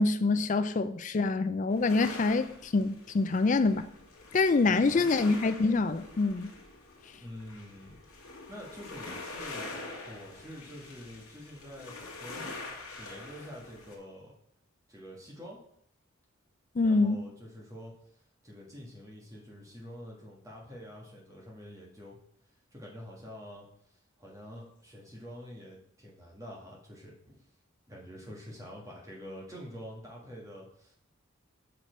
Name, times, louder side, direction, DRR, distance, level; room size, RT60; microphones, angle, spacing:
voice 1, 0.0-3.9 4.3-6.5 16.8-17.2, left 3 dB, 35° left, 0.3 m, -26 dB
sound 1, 1.7-14.0, left 3 dB, 85° left, 1.5 m, -45 dB
voice 2, 4.6-5.1 7.2-14.3 14.9-15.6 16.8-17.9 18.4-22.2 22.7-23.7 24.2-27.4 27.9-31.0, equal, 15° right, 1.5 m, -47 dB
5.8 x 5.1 x 4.5 m
head